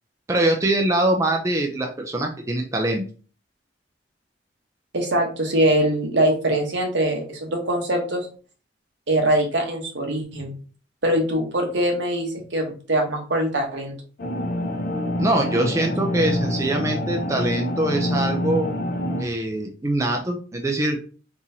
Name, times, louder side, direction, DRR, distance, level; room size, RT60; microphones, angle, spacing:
voice 1, 0.3-3.0 15.2-18.7 19.2-21.0, right 1 dB, 15° right, 1 dB, 0.4 m, -23 dB
voice 2, 4.9-8.3 9.1-10.5 11.0-13.9, right 1 dB, 70° right, 2 dB, 1.0 m, -22 dB
sound 1, 14.2-19.2, left 1 dB, 50° left, 0.6 m, -26 dB
3.8 x 3.0 x 2.7 m, 0.38 s
head